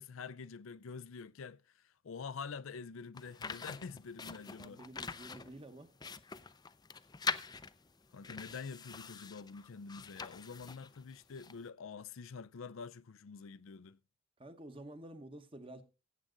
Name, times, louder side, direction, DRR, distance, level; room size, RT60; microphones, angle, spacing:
voice 1, 0.0-4.8 8.1-14.0, left 5 dB, 75° left, 0.5 m, -47 dB
sound 1, 3.1-11.7, left 5 dB, 20° left, 0.5 m, -44 dB
voice 2, 4.6-5.9 14.4-15.8, right 1 dB, 25° right, 1.1 m, -50 dB
16.0 x 7.6 x 3.8 m
head